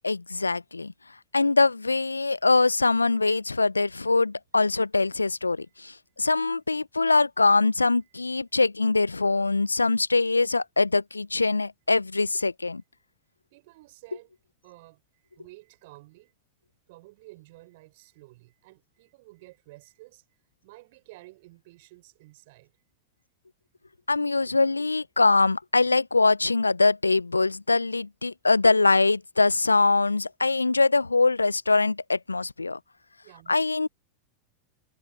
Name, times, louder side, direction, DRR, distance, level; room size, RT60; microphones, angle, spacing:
voice 1, 0.0-0.9 1.3-12.8 24.1-32.8 33.5-33.9, left 3 dB, 85° left, 0.7 m, -23 dB
voice 2, 13.5-14.3 14.6-16.3 16.9-20.2 20.6-22.7 33.2-33.7, right 21 dB, 55° right, 6.4 m, -51 dB
figure-of-eight pair, 90°, 0 cm